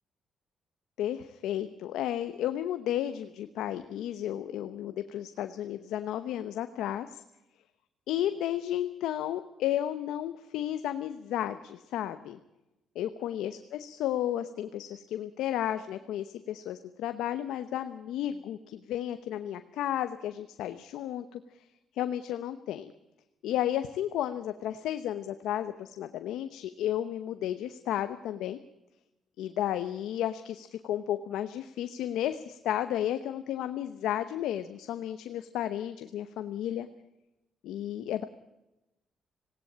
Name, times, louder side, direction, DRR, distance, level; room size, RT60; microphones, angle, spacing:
voice 1, 1.0-7.2 8.1-12.4 12.9-21.4 21.9-22.9 23.4-28.6 29.4-36.9 37.6-38.2, left 11 dB, 85° left, 10 dB, 0.9 m, -33 dB
19.0 x 17.5 x 8.6 m, 0.96 s
cardioid pair, 90°, 0 cm